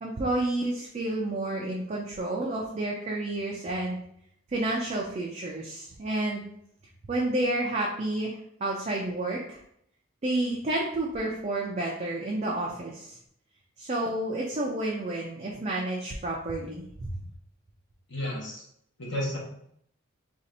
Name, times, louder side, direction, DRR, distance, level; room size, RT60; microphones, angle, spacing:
voice 1, 0.0-4.0 4.5-6.4 7.1-9.6 10.2-13.2 13.8-17.1, right 2 dB, 35° right, -2 dB, 0.4 m, -30 dB
voice 2, 18.1-18.6 19.0-19.4, left 1 dB, 60° left, -3 dB, 1.0 m, -32 dB
2.7 x 2.5 x 4.1 m, 0.70 s
head